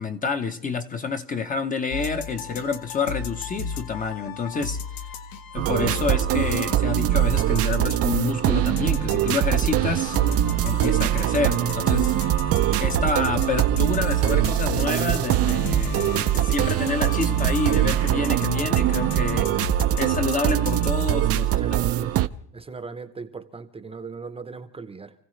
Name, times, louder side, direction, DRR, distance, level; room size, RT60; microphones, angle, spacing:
voice 1, 0.0-4.8 5.5-10.2 10.6-12.1 12.6-21.6, left 4 dB, 25° left, 0.8 m, -28 dB
sound 1, 1.9-21.0, left 5 dB, 80° left, 1.2 m, -35 dB
sound 2, 5.6-22.3, right 13 dB, 45° right, 0.5 m, -22 dB
voice 2, 21.6-22.1 22.5-25.1, right 4 dB, 15° right, 0.8 m, -38 dB
29.0 x 15.5 x 3.2 m
cardioid pair, 160°, 34 cm